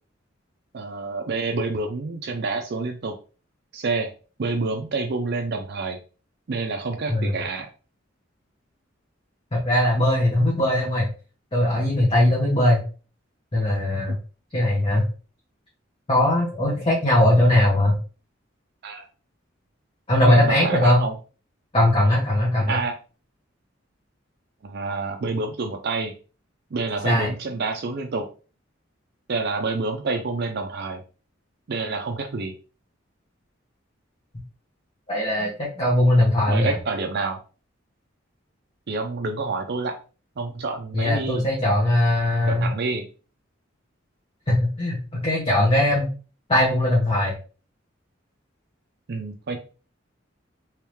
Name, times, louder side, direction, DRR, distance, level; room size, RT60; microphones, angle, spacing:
voice 1, 0.7-3.1 3.7-4.1 4.4-6.0 6.5-7.7 14.1-14.2 18.8-19.1 20.3-21.1 22.7-22.9 24.6-26.1 26.7-28.3 29.3-31.0 31.7-32.5 36.5-37.4 38.9-40.0 40.4-41.5 42.5-43.1 49.1-49.6, right 3 dB, 55° right, 4 dB, 0.5 m, -28 dB
voice 2, 9.5-11.1 11.5-12.8 13.5-14.2 14.5-15.0 16.1-18.0 20.1-21.0 21.7-22.8 27.0-27.3 35.1-36.7 40.9-42.7 44.5-46.1 46.5-47.3, left 1 dB, 30° left, -5 dB, 1.1 m, -20 dB
3.4 x 3.2 x 3.1 m, 0.37 s
head